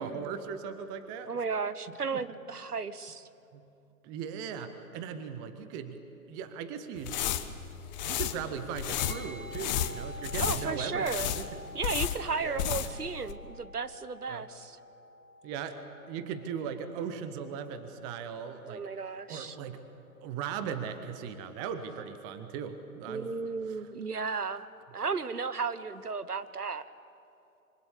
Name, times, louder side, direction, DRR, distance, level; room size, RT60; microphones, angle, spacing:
voice 1, 0.0-1.3 3.5-3.6 4.0-6.0 6.3-7.2 8.1-11.4 11.9-12.0 12.4-12.7 14.3-14.4 15.4-18.8 19.3-19.8 20.2-23.3 23.7-23.8, right 7 dB, 10° right, 9 dB, 0.6 m, -38 dB
voice 2, 1.3-3.3 10.4-11.3 11.7-14.8 18.7-19.6 23.1-24.7 24.9-26.8, right 5 dB, 85° right, 13 dB, 1.3 m, -34 dB
sound 1, 7.0-13.0 13.3-13.4, left 10 dB, 30° left, 1.2 m, -33 dB
sound 2, 9.0-18.7, equal, 65° right, 5.4 m, -49 dB
25.5 x 24.5 x 8.3 m, 2.7 s
figure-of-eight pair, 130°, 45 cm